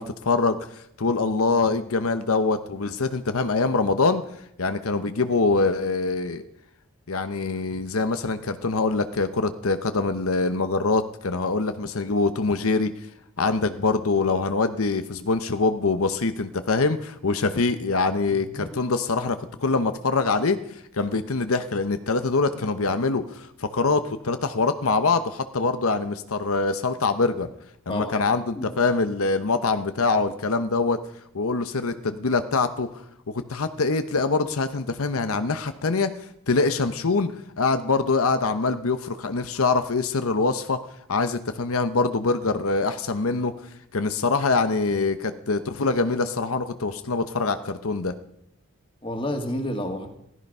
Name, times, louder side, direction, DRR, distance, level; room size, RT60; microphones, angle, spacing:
voice 1, 0.0-4.2 4.6-6.4 7.1-12.9 13.4-27.5 27.9-31.0 31.3-36.2 36.5-40.8 41.1-43.5 43.9-48.1, left 3 dB, 80° left, 10 dB, 0.9 m, -24 dB
voice 2, 18.3-18.8 27.9-28.2 28.6-28.7 49.0-50.1, left 1 dB, 25° left, 4 dB, 2.0 m, -30 dB
16.0 x 14.0 x 5.5 m, 0.77 s
head